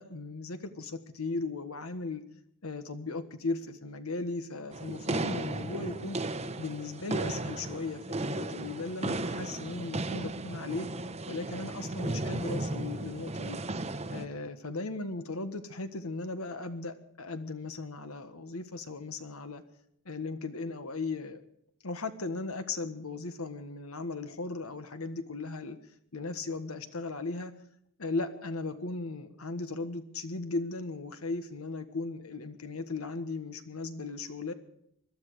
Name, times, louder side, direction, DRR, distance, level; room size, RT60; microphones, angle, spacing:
voice 1, 0.0-2.2 2.6-6.2 6.6-10.9 11.3-13.6 14.1-19.6 20.0-21.4 21.8-25.8 26.1-27.5 28.0-34.5, left 3 dB, 80° left, 9 dB, 1.5 m, -37 dB
sound 1, 4.7-14.3, right 2 dB, 30° right, 0.9 m, -35 dB
21.5 x 12.5 x 4.9 m, 0.74 s
head